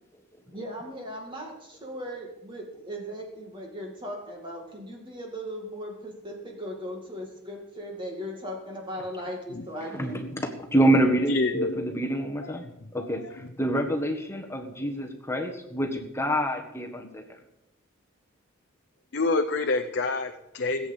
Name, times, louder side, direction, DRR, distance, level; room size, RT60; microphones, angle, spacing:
voice 1, 0.5-10.2, equal, 25° right, 0 dB, 2.2 m, -38 dB
voice 2, 10.7-12.6 12.9-17.4, right 1 dB, 10° left, 3 dB, 1.5 m, -26 dB
voice 3, 11.3-11.9 12.4-12.5 13.0-13.4 19.1-20.9, left 3 dB, 50° left, 6 dB, 0.8 m, -27 dB
17.5 x 8.6 x 7.2 m, 0.91 s
head